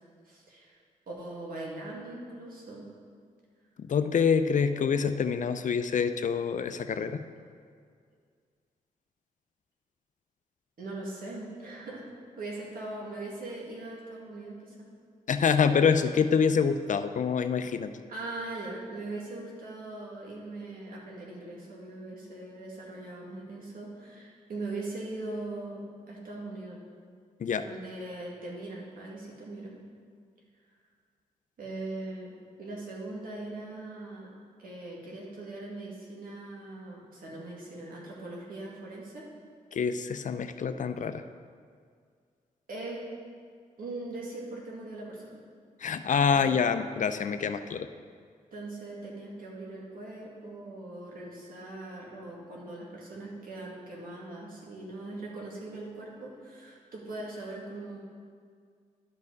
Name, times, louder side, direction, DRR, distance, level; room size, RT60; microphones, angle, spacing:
voice 1, 0.3-0.8 1.1-2.9 10.8-12.1 12.4-14.9 18.1-26.8 27.7-29.8 31.6-34.3 34.6-39.3 42.7-43.0 43.8-45.4 46.3-46.6 48.5-58.0, right 2 dB, 70° right, -3 dB, 2.1 m, -40 dB
voice 2, 3.8-7.2 15.3-17.9 27.4-27.7 39.7-41.2 45.8-47.9, left 6 dB, 55° left, 10 dB, 0.5 m, -26 dB
11.5 x 5.4 x 4.0 m, 2.1 s
cardioid pair, 60°, 15 cm